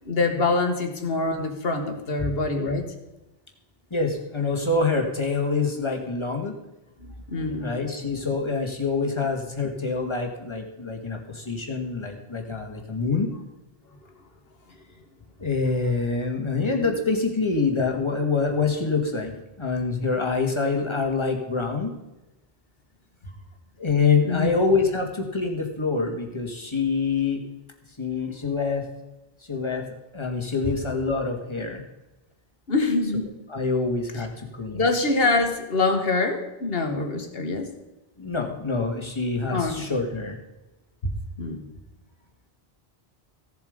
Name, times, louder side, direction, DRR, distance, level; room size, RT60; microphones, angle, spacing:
voice 1, 0.1-2.8 7.3-7.7 9.2-9.3 16.8-17.0 24.3-24.6 32.7-33.3 34.1-34.3 34.7-37.7 39.5-39.9 41.4-41.7, left 3 dB, 65° left, 6 dB, 1.7 m, -25 dB
voice 2, 3.9-6.5 7.6-13.3 15.4-21.9 23.8-27.4 28.0-28.9 29.5-29.8 30.1-31.8 33.5-34.9 38.2-40.4, left 4 dB, 25° left, 2 dB, 1.8 m, -26 dB
16.0 x 7.4 x 5.1 m, 1.0 s
omnidirectional pair, 1.1 m